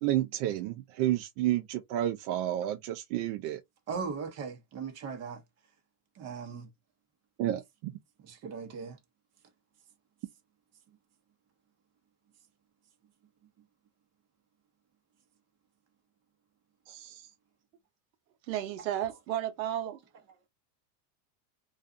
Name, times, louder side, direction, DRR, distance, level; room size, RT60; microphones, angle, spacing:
voice 1, 0.0-3.6 7.4-7.9 16.9-17.3, right 13 dB, 50° right, 0.5 m, -31 dB
voice 2, 3.9-5.4 6.2-6.7 8.3-9.0, right 5 dB, 30° right, 0.9 m, -38 dB
voice 3, 18.5-20.0, right 11 dB, 90° right, 0.8 m, -33 dB
2.4 x 2.3 x 2.5 m
supercardioid pair, 120°, 50 cm